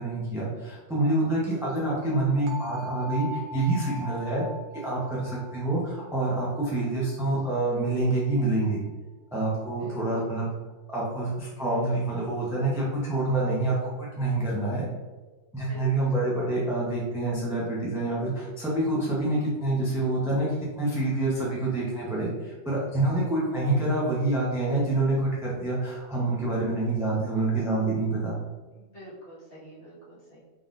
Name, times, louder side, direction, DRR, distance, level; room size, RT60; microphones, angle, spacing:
voice 1, 0.0-4.4 4.7-8.8 9.3-10.5 10.9-14.9 15.5-20.5 20.8-28.4, right 2 dB, 5° right, -6 dB, 0.4 m, -27 dB
sound 1, 2.5-8.3, equal, 60° right, 0.9 m, -40 dB
voice 2, 9.8-10.2 15.7-16.1 28.7-30.4, equal, 35° left, -10 dB, 1.8 m, -46 dB
3.8 x 3.7 x 2.5 m, 1.3 s
omnidirectional pair, 1.7 m